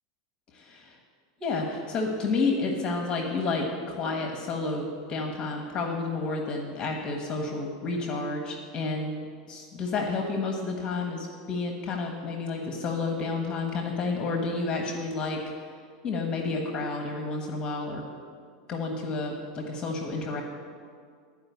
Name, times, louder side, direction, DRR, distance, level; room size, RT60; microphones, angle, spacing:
voice 1, 0.5-1.0 1.4-15.4 16.0-18.0 18.7-20.4, left 3 dB, 30° left, 2 dB, 1.2 m, -30 dB
12.5 x 4.9 x 8.1 m, 2.1 s
supercardioid pair, 145°, 3 cm